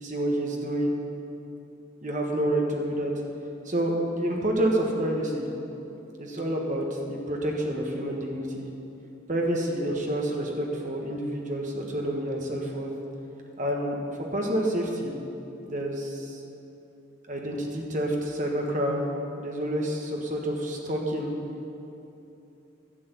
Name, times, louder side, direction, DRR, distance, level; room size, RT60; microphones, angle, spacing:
voice 1, 0.0-1.0 2.0-3.1 3.6-5.5 6.2-8.7 9.3-12.9 13.6-15.1 15.6-16.4 17.3-19.0 19.4-21.3, right 1 dB, 40° right, 0 dB, 1.5 m, -28 dB
11.5 x 6.9 x 8.2 m, 2.9 s
head